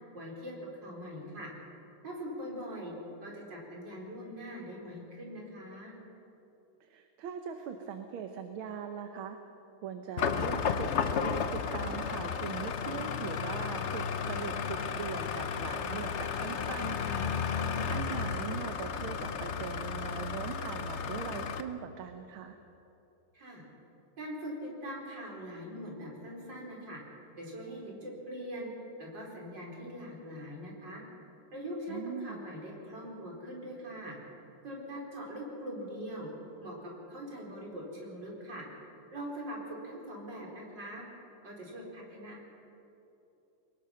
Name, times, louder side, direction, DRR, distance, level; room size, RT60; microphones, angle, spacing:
voice 1, 0.1-0.6 0.8-1.5 2.0-2.9 3.2-5.9 23.3-23.6 24.2-27.0 27.4-28.7 29.0-31.0 31.5-34.2 34.6-36.3 36.6-38.6 39.1-41.0 41.4-42.4, equal, 55° right, -2 dB, 4.8 m, -42 dB
voice 2, 6.8-9.4 9.8-10.9 11.2-17.3 17.9-22.6 31.9-32.4, right 7 dB, 75° right, 6 dB, 1.8 m, -41 dB
sound 1, 10.2-21.6, left 6 dB, 80° left, 0.6 m, -33 dB
23.0 x 20.0 x 5.7 m, 3.0 s
omnidirectional pair, 2.4 m